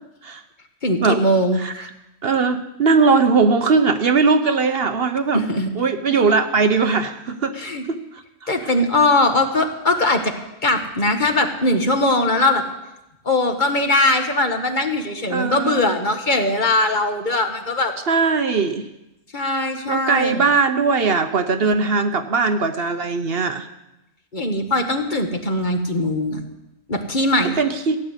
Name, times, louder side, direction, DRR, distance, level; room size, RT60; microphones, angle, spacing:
voice 1, 0.8-1.9 5.3-5.7 7.6-7.8 8.5-10.3 10.6-12.6 13.2-17.9 19.3-20.5 24.3-26.4 26.9-27.6, left 2 dB, 40° left, 5 dB, 1.5 m, -20 dB
voice 2, 1.6-1.9 2.2-5.4 5.8-7.6 7.9-8.0 8.4-8.7 15.3-15.9 18.1-18.9 19.9-23.7 27.6-28.0, right 4 dB, 55° right, 8 dB, 1.0 m, -19 dB
16.0 x 9.8 x 8.2 m, 0.93 s
omnidirectional pair, 1.2 m